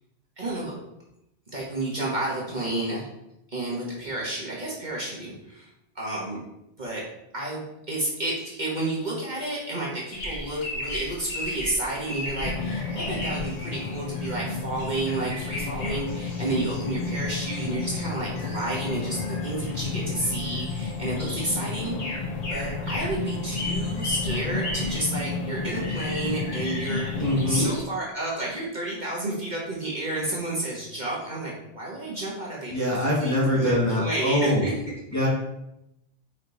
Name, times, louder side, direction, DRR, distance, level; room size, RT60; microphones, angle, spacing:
voice 1, 0.4-0.7 1.5-3.1 3.5-5.7 5.9-6.4 6.8-7.0 7.3-22.2 22.5-35.0, right 2 dB, 40° right, -5 dB, 1.6 m, -31 dB
sound 1, 10.1-27.8, left 1 dB, 55° left, 1.6 m, -37 dB
sound 2, 12.4-27.7, left 4 dB, 90° left, 0.3 m, -31 dB
voice 2, 27.2-27.8 32.7-34.6 35.1-35.3, equal, 15° left, -6 dB, 1.7 m, -23 dB
5.3 x 5.1 x 4.0 m, 0.85 s
omnidirectional pair, 1.2 m